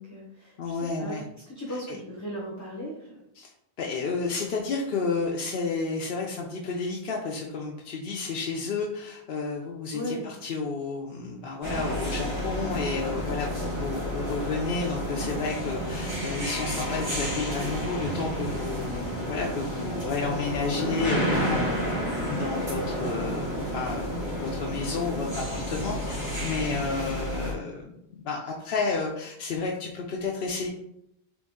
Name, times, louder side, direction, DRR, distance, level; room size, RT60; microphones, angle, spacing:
voice 1, 0.0-3.2 9.9-10.3, equal, 20° left, -4 dB, 0.7 m, -37 dB
voice 2, 0.6-1.2 1.9-2.0 3.4-3.5 3.8-21.7 22.3-30.7, left 4 dB, 65° left, -1 dB, 0.8 m, -31 dB
sound 1, 11.6-27.5, equal, 80° right, 2.1 m, -30 dB
4.0 x 3.0 x 3.6 m, 0.79 s
omnidirectional pair, 1.1 m